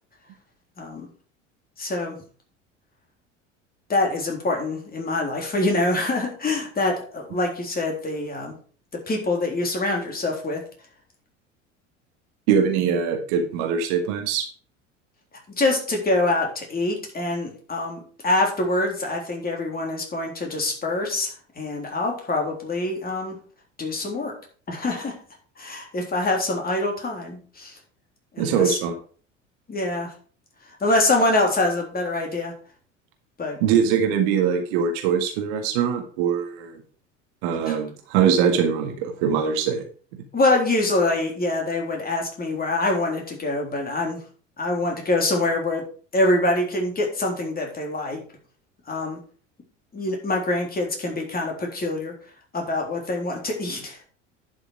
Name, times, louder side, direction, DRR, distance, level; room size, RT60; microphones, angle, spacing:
voice 1, 0.8-1.1 1.8-2.2 3.9-8.5 8.9-10.6 15.6-23.4 23.8-24.3 24.7-25.1 25.6-27.8 28.3-28.8 29.7-30.1 30.8-32.5 33.4-33.6 37.7-37.8 40.3-44.2 44.6-45.9 46.1-48.2 48.9-49.2 49.9-52.1 52.5-54.0, left 2 dB, 25° left, 1 dB, 3.6 m, -25 dB
voice 2, 12.5-14.5 28.4-28.9 33.6-36.8 37.4-39.8, right 7 dB, 55° right, 5 dB, 1.9 m, -22 dB
10.5 x 6.4 x 4.7 m, 0.40 s
figure-of-eight pair, 70°, 38 cm